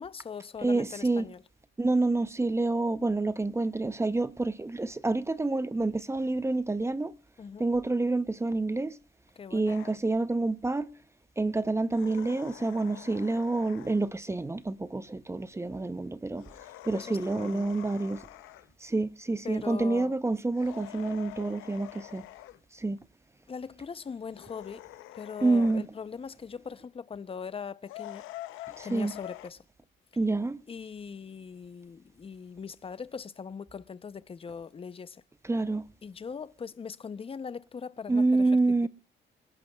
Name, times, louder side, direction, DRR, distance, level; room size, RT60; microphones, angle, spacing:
voice 1, 0.0-1.4 7.4-7.7 9.4-9.7 16.9-17.7 19.4-20.1 23.5-24.9 25.1-28.2 28.8-29.6 30.7-35.2 36.0-38.5 38.8-38.9, left 6 dB, 30° left, 0.6 m, -40 dB
voice 2, 0.6-1.3 1.8-7.1 7.6-8.9 9.5-10.9 11.4-16.4 16.9-18.2 18.8-22.2 22.8-23.0 25.4-25.8 28.8-29.1 30.2-30.6 35.4-35.8 38.1-38.9, right 2 dB, 15° right, 0.6 m, -28 dB
sound 1, 9.7-10.0 11.9-14.1 16.4-18.7 20.5-22.6 24.3-25.9 27.8-29.5, left 16 dB, 90° left, 0.6 m, -46 dB
27.5 x 10.5 x 2.3 m
cardioid pair, 90°, 20 cm